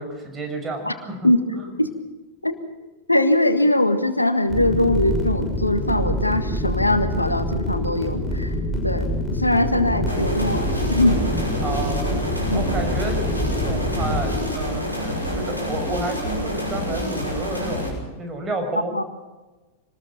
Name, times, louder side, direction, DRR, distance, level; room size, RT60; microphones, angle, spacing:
voice 1, 0.0-1.3 1.5-1.7 11.6-12.1 12.5-19.0, right 2 dB, 20° right, 4 dB, 6.0 m, -31 dB
voice 2, 3.1-8.5 8.8-11.2 12.5-12.8 18.9-19.0, left 1 dB, 85° left, 9 dB, 1.6 m, -21 dB
sound 1, 4.5-14.5, left 1 dB, ahead, 6.8 m, -26 dB
sound 2, 10.1-17.9, equal, 90° right, 5.8 m, -28 dB
24.5 x 20.0 x 5.9 m, 1.2 s
figure-of-eight pair, 90°, 0 cm